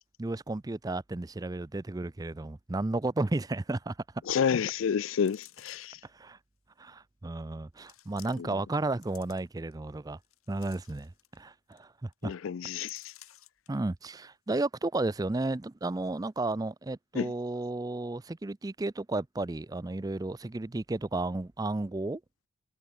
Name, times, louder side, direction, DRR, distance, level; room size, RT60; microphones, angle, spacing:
voice 1, 0.2-4.0 6.1-6.4 6.8-10.2 10.5-12.3 13.7-22.2, right 2 dB, 15° right, 0.4 m, -33 dB
voice 2, 4.3-6.0 12.2-13.0 17.2-17.3, left 7 dB, 65° left, 0.4 m, -29 dB
sound 1, 5.2-6.0 6.8-6.9 7.8-8.6 8.9-9.7 10.2-11.4 11.7-11.8 12.1-12.3 12.9-13.7 14.1-14.2, left 13 dB, 85° left, 6.6 m, -55 dB
head